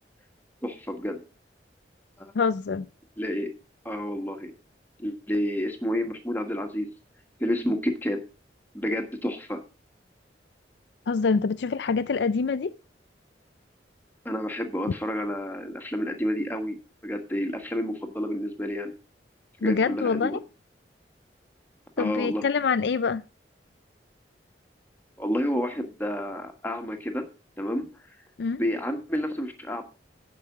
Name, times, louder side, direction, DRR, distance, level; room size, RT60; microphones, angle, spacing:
voice 1, 0.6-1.2 2.2-2.3 3.2-3.5 3.8-4.5 5.0-6.9 7.4-8.2 8.7-9.6 14.2-18.9 19.6-20.4 22.0-22.4 25.2-27.2 27.6-27.9 28.6-29.8, equal, 10° left, 1.5 m, -29 dB
voice 2, 2.3-2.9 11.1-12.7 19.6-20.4 22.0-23.2 28.4-28.6, left 5 dB, 75° left, 0.4 m, -25 dB
10.0 x 5.1 x 7.2 m
head